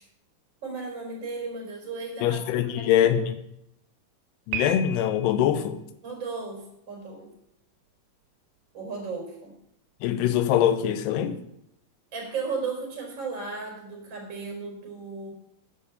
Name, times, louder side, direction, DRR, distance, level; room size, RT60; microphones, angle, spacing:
voice 1, 0.6-2.4 2.7-3.1 6.0-7.3 8.7-9.5 12.1-15.3, right 4 dB, 30° right, 0 dB, 4.2 m, -35 dB
voice 2, 2.2-3.3 4.5-5.8 10.0-11.4, left 10 dB, 85° left, 10 dB, 2.9 m, -23 dB
Piano, 4.5-5.5, right 3 dB, 70° right, 2.8 m, -33 dB
10.0 x 7.7 x 6.8 m, 0.80 s
omnidirectional pair, 4.6 m